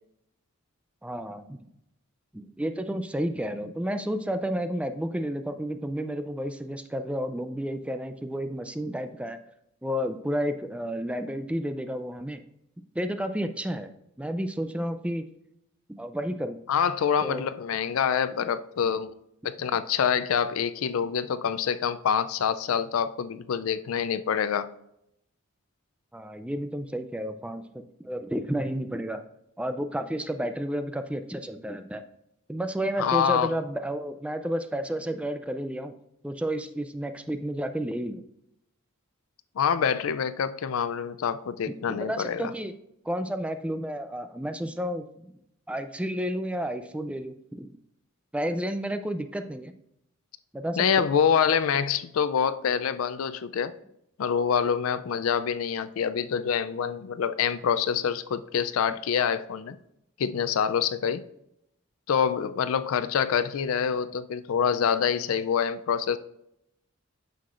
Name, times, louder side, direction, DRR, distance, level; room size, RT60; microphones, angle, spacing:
voice 1, 1.0-1.6 2.3-9.4 9.8-12.4 13.0-13.9 14.2-15.2 15.9-16.6 17.2-17.4 18.8-18.9 26.1-29.2 29.6-32.0 32.5-35.9 36.2-38.2 41.7-42.7 43.1-45.3 45.7-47.8 48.3-49.7 50.5-51.0, equal, 5° right, 0.3 m, -31 dB
voice 2, 16.7-19.1 19.4-24.7 33.0-33.5 39.6-42.5 50.8-53.7 54.2-59.8 60.2-61.2 62.1-66.2, left 7 dB, 75° left, 0.4 m, -26 dB
9.3 x 6.6 x 2.5 m
head